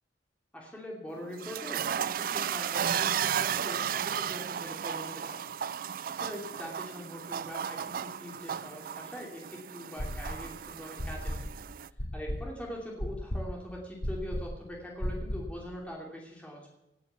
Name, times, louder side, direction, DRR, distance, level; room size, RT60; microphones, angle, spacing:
voice 1, 0.5-5.4 6.1-11.5 12.1-16.8, equal, 5° left, -2 dB, 2.7 m, -42 dB
sound 1, 1.1-11.9, right 9 dB, 50° right, 0.4 m, -34 dB
sound 2, 10.0-10.6 11.0-15.6, equal, 85° left, 2.2 m, -35 dB
17.0 x 7.1 x 8.2 m, 0.91 s
head